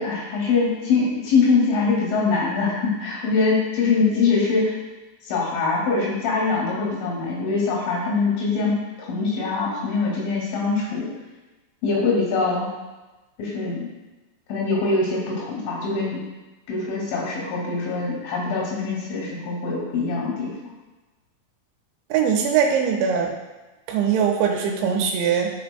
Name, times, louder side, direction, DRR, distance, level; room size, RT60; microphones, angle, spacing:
voice 1, 0.0-4.7 5.3-11.1 11.8-12.7 13.4-13.9 14.5-16.2 16.7-20.6, left 4 dB, 90° left, -3 dB, 4.6 m, -23 dB
voice 2, 22.1-23.3 23.9-25.5, right 7 dB, 85° right, 1 dB, 3.0 m, -21 dB
12.0 x 5.2 x 2.2 m, 1.1 s
omnidirectional pair, 5.5 m